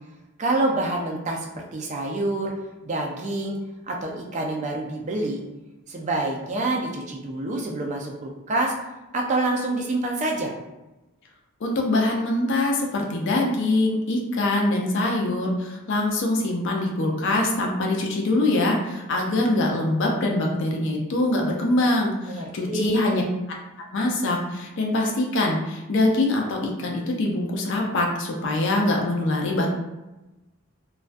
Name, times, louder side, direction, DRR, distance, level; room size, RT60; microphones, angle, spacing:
voice 1, 0.4-2.5 2.8-3.6 3.9-5.4 5.9-8.7 9.1-10.5 22.3-23.0, right 2 dB, 30° right, 1 dB, 0.3 m, -27 dB
voice 2, 11.6-23.2 23.9-29.7, left 2 dB, 55° left, 0 dB, 0.4 m, -23 dB
2.3 x 2.2 x 2.4 m, 1.0 s
head